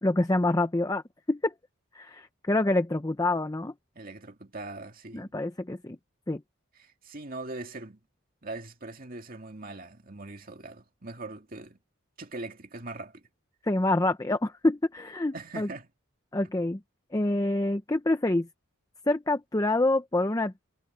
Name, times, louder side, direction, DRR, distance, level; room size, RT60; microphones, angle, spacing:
voice 1, 0.0-1.0 1.3-1.5 1.9-3.7 5.1-6.0 6.3-6.4 13.6-15.7 16.3-16.8 17.1-18.5 19.1-20.7, left 2 dB, 15° left, 0.6 m, -26 dB
voice 2, 3.9-5.3 6.8-8.0 8.4-11.8 12.2-13.2 15.3-15.9, right 2 dB, 40° right, 2.4 m, -41 dB
head